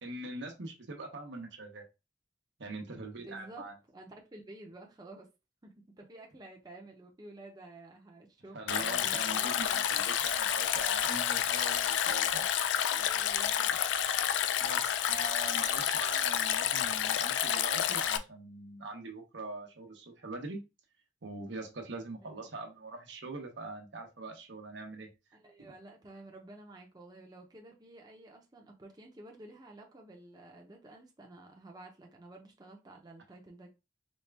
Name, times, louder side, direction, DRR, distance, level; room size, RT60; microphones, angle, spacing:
voice 1, 0.0-1.8 2.6-3.7 8.5-12.5 14.6-20.6 21.2-25.1 25.6-25.7, right 2 dB, 80° right, 0.9 m, -42 dB
voice 2, 3.2-3.7 3.9-5.3 5.6-9.9 12.9-13.8 14.6-14.8 22.2-22.4 25.3-33.7, right 2 dB, 25° right, 0.7 m, -51 dB
Stream, 8.7-18.2, left 10 dB, 85° left, 0.3 m, -30 dB
4.2 x 2.4 x 3.4 m
head